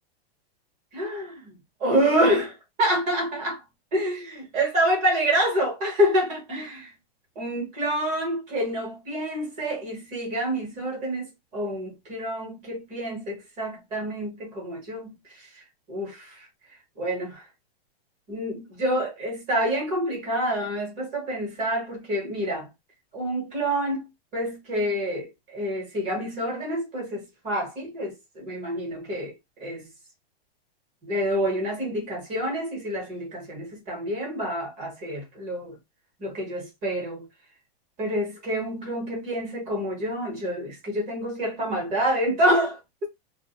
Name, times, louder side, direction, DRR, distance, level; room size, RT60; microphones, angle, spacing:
voice 1, 0.9-3.6 3.9-6.9 7.4-15.1 15.9-16.3 17.0-17.4 18.3-22.7 23.1-29.3 29.6-29.9 31.0-35.8 36.2-37.3 38.0-43.1, equal, 25° right, 0.8 m, -27 dB
2.5 x 2.0 x 2.8 m
supercardioid pair, 165°, 30 cm